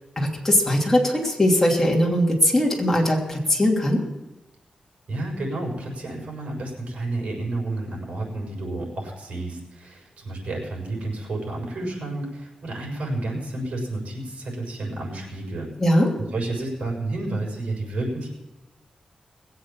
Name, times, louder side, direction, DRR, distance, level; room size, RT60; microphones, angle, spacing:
voice 1, 0.2-4.0 15.8-16.1, left 1 dB, 15° left, -2 dB, 2.9 m, -20 dB
voice 2, 5.1-15.7 16.2-18.3, right 2 dB, 80° right, -1 dB, 6.5 m, -30 dB
21.0 x 8.1 x 7.3 m, 1.0 s
wide cardioid pair, 125°, 2 cm